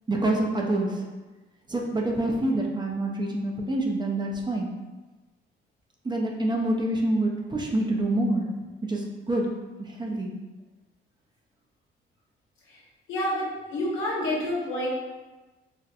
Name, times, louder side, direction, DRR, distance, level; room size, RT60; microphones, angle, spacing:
voice 1, 0.1-0.9 1.7-4.7 6.0-8.4 8.9-9.0 9.3-9.5 10.0-10.3, right 1 dB, 20° right, 0 dB, 0.6 m, -26 dB
voice 2, 13.1-14.9, left 1 dB, 85° left, -4 dB, 1.0 m, -28 dB
4.1 x 2.1 x 2.5 m, 1.2 s
cardioid pair, 90°, 20 cm